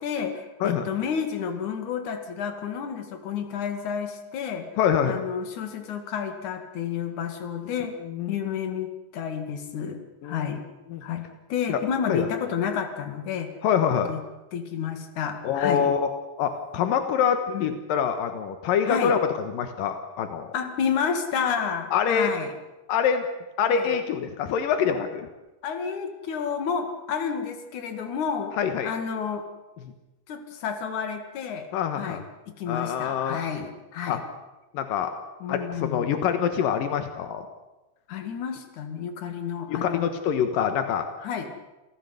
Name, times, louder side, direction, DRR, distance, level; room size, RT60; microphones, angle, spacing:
voice 1, 0.0-4.7 5.0-8.0 8.3-10.6 11.0-11.2 11.5-13.5 14.1-14.2 14.5-15.9 17.5-17.8 18.8-19.2 20.5-22.6 23.6-23.9 25.6-28.5 28.8-29.5 30.3-31.7 32.0-34.2 35.4-36.2 38.1-40.1 41.2-41.6, left 7 dB, 65° left, 7 dB, 3.4 m, -30 dB
voice 2, 4.8-5.2 8.1-8.4 10.2-10.5 10.9-11.0 11.7-11.8 12.1-12.3 13.6-14.1 15.4-16.1 16.4-19.2 19.5-20.5 21.9-22.3 22.9-23.2 23.6-25.3 28.6-28.9 31.7-32.2 32.7-33.4 34.1-34.2 34.7-35.1 35.5-37.5 39.7-41.1, left 8 dB, 85° left, 8 dB, 3.1 m, -25 dB
28.0 x 16.0 x 8.0 m, 1.1 s
omnidirectional pair, 3.9 m